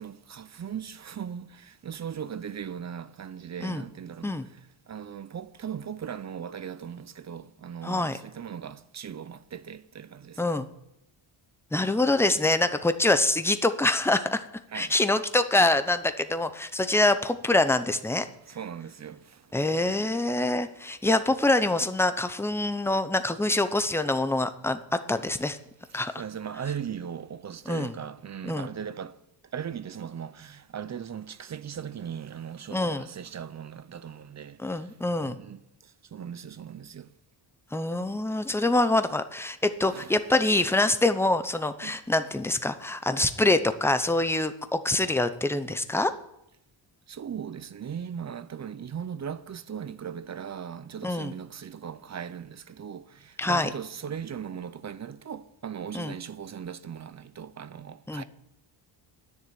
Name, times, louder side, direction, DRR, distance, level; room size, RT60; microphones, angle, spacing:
voice 1, 0.0-4.6 4.9-10.6 14.7-14.9 18.5-19.6 25.9-34.9 35.2-37.1 39.9-40.1 41.8-42.0 47.1-58.2, right 8 dB, 35° right, 0.6 m, -38 dB
voice 2, 7.8-8.2 10.4-10.7 11.7-14.4 14.7-18.3 19.5-24.8 25.1-25.6 25.9-26.1 27.7-27.9 28.4-28.7 32.7-33.1 34.6-35.4 37.7-46.1 51.0-51.3 53.4-53.7 55.9-56.1 58.1-58.2, left 2 dB, 5° left, 0.7 m, -25 dB
10.5 x 6.6 x 9.1 m
cardioid pair, 115°, 49 cm